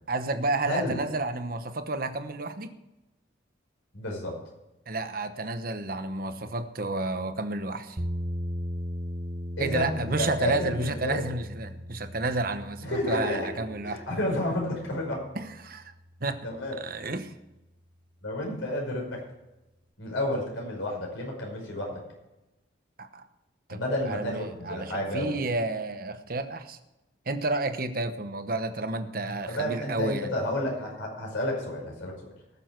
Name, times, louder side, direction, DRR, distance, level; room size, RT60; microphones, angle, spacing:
voice 1, 0.1-2.8 4.9-8.0 9.6-14.0 15.3-15.9 16.2-16.5 16.8-17.3 23.0-23.2 23.7-23.8 24.1-26.8 27.3-30.3, right 2 dB, 45° right, 9 dB, 1.0 m, -31 dB
voice 2, 0.6-1.0 3.9-4.4 9.6-11.2 12.8-13.5 13.8-15.2 16.4-16.7 18.2-19.2 20.0-22.0 23.7-25.4 29.5-32.3, left 1 dB, 85° left, -1 dB, 5.3 m, -31 dB
sound 1, 8.0-16.1, equal, 25° right, 1.0 m, -38 dB
19.5 x 7.2 x 4.6 m, 0.97 s
head